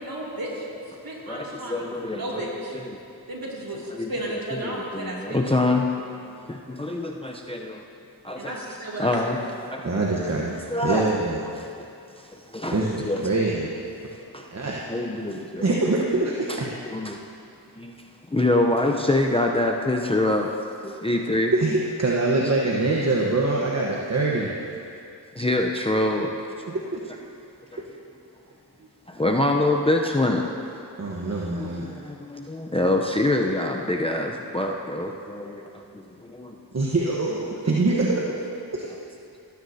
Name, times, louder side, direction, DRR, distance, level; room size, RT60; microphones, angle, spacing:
voice 1, 0.0-2.8 3.3-5.4 8.4-9.5, right 1 dB, 55° right, -4 dB, 2.8 m, -34 dB
voice 2, 1.3-2.5 2.7-3.0 3.9-5.8 6.5-7.8 8.2-8.6 9.0-9.4 9.7-9.9 10.7-11.1 12.5-13.2 14.3-14.4 14.9-15.6 16.5-16.6 16.9-17.2 17.8-17.9 18.3-20.5 20.8-21.5 25.4-26.3 27.7-27.8 29.1-30.4 31.5-35.8 36.3-36.5, left 2 dB, 15° left, 1 dB, 0.7 m, -25 dB
voice 3, 9.8-10.6 10.8-11.4 12.7-13.7 14.5-14.8 15.6-16.7 21.5-24.5 26.7-27.0 31.0-31.8 36.7-38.1, right 2 dB, 35° right, -3 dB, 1.2 m, -24 dB
16.5 x 9.5 x 2.8 m, 2.6 s
cardioid pair, 45°, 43 cm